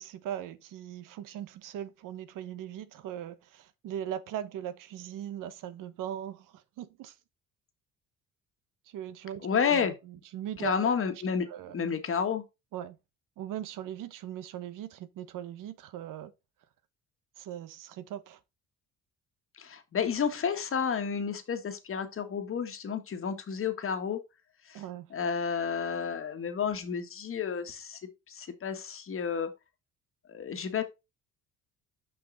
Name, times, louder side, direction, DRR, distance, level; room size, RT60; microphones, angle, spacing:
voice 1, 0.0-7.1 8.9-10.7 11.5-11.8 12.7-13.0 13.4-16.3 17.4-18.4 24.7-25.1, right 10 dB, 75° right, 1.0 m, -40 dB
voice 2, 9.4-10.0 10.6-11.5 11.7-12.4 19.5-24.2 24.7-24.8 25.1-28.0 28.3-29.5 30.3-30.8, left 6 dB, 40° left, 1.6 m, -31 dB
6.1 x 5.7 x 4.0 m
cardioid pair, 100°, 32 cm